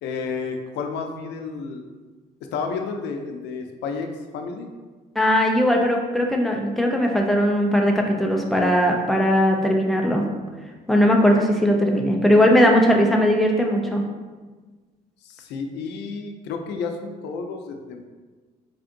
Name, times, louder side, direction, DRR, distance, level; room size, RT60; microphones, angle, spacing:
voice 1, 0.0-1.9 2.5-4.7 15.2-18.1, left 5 dB, 90° left, 4 dB, 0.5 m, -31 dB
voice 2, 5.2-10.2 10.9-14.0, equal, ahead, 0 dB, 0.4 m, -19 dB
3.4 x 2.5 x 3.7 m, 1.3 s
cardioid pair, 145°, 17 cm